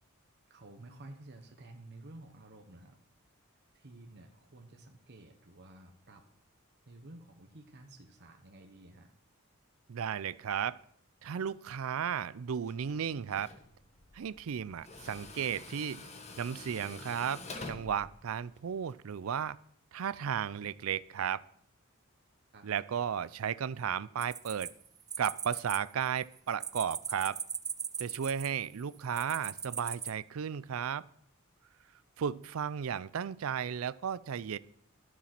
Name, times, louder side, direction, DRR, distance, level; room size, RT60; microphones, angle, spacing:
voice 1, 0.5-3.0 3.7-6.2 6.8-9.1 22.5-22.7, right 2 dB, 55° right, 3 dB, 1.1 m, -52 dB
voice 2, 9.9-10.8 11.2-13.5 14.1-16.1 16.4-19.6 19.9-21.4 22.6-24.7 25.2-27.4 28.0-31.0 32.2-34.6, right 8 dB, 80° right, 19 dB, 0.4 m, -34 dB
Tools, 12.7-18.9, left 3 dB, 30° left, 1.3 m, -48 dB
sound 1, 24.2-25.8 26.1-28.7 29.1-30.1, right 7 dB, 20° right, 0.4 m, -39 dB
12.5 x 7.2 x 5.9 m, 0.67 s
head